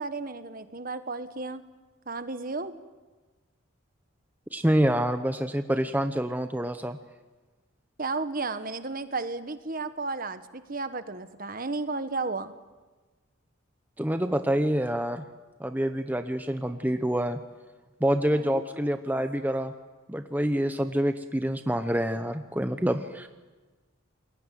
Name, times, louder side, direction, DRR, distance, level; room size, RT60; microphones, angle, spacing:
voice 1, 0.0-1.6 2.1-2.7 8.0-12.5 18.3-18.6, right 3 dB, 40° right, 11 dB, 1.4 m, -33 dB
voice 2, 4.5-7.0 14.0-15.2 15.6-17.4 18.0-19.7 20.1-23.3, equal, 10° right, 8 dB, 0.8 m, -27 dB
28.5 x 22.0 x 9.3 m, 1.3 s
head